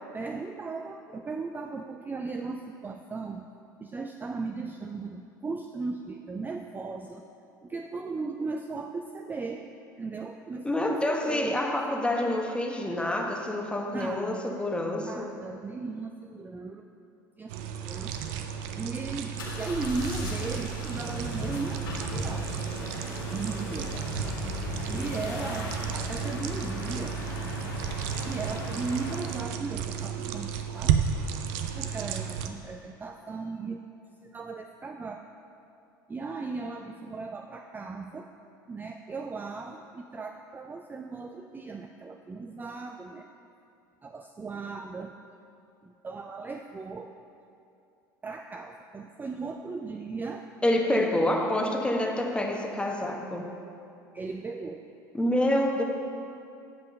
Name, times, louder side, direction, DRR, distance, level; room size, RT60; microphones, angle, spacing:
voice 1, 0.1-3.4 3.8-7.2 7.6-9.7 10.0-11.8 13.9-14.4 14.9-16.9 17.4-17.5 17.8-18.1 18.8-22.6 23.3-24.0 24.9-27.2 28.3-31.0 31.8-33.8 34.2-35.2 36.1-38.3 38.7-43.3 44.0-45.1 45.8-47.1 48.2-50.5 51.2-51.4 54.1-54.8, right 4 dB, 15° right, 4 dB, 0.4 m, -37 dB
voice 2, 10.6-15.3 50.6-53.5 55.1-55.8, left 1 dB, 10° left, 1 dB, 1.1 m, -27 dB
sound 1, 17.5-32.5, right 8 dB, 65° right, 0.6 m, -33 dB
sound 2, 19.4-29.5, left 2 dB, 75° left, 1.6 m, -37 dB
8.4 x 5.5 x 5.3 m, 2.6 s
hypercardioid pair, 70°, 11 cm